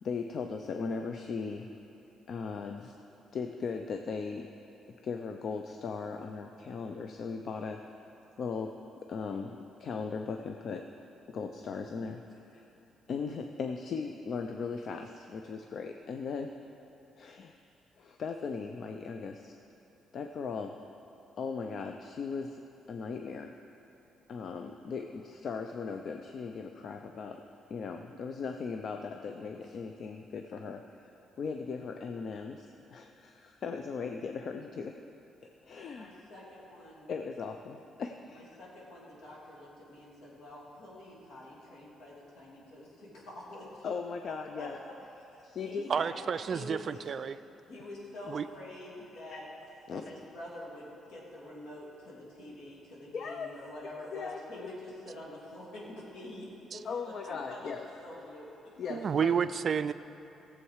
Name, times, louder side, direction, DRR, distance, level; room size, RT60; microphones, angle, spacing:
voice 1, 0.0-1.7 2.3-2.9 3.3-4.5 5.0-7.8 8.4-10.9 11.3-12.7 13.1-16.5 17.2-17.5 18.0-19.6 20.1-20.8 21.4-22.6 22.9-23.6 24.3-27.4 27.7-35.0 35.6-36.2 37.1-38.5 43.8-44.8 45.4-45.9 47.8-47.9 49.1-49.4 49.9-50.0 53.1-53.6 54.1-54.7 56.8-57.9 58.8-59.4, left 5 dB, 60° left, 5 dB, 0.5 m, -38 dB
voice 2, 36.0-37.1 38.3-43.9 44.2-44.7 45.3-46.1 46.5-46.8 47.7-49.5 49.9-58.7, left 1 dB, 80° left, -5 dB, 3.0 m, -46 dB
voice 3, 45.9-47.4 48.3-48.5 56.7-56.8 58.9-59.9, right 7 dB, 50° right, 13 dB, 0.4 m, -30 dB
16.0 x 7.6 x 4.8 m, 2.9 s
cardioid pair, 90°, 0 cm